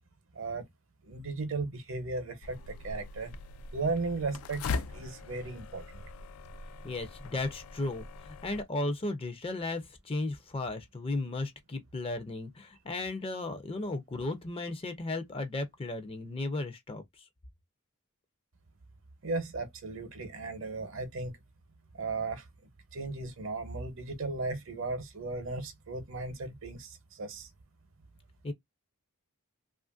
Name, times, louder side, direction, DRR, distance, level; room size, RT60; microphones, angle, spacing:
voice 1, 0.3-0.6 1.0-3.3 3.7-6.0 19.2-21.3 21.9-22.5 22.9-27.5, right 3 dB, 60° right, 0.8 m, -36 dB
sound 1, 2.4-8.6, left 4 dB, 80° left, 0.4 m, -41 dB
voice 2, 6.8-17.2 28.4-28.5, left 2 dB, 25° left, 0.5 m, -35 dB
2.9 x 2.5 x 2.3 m
head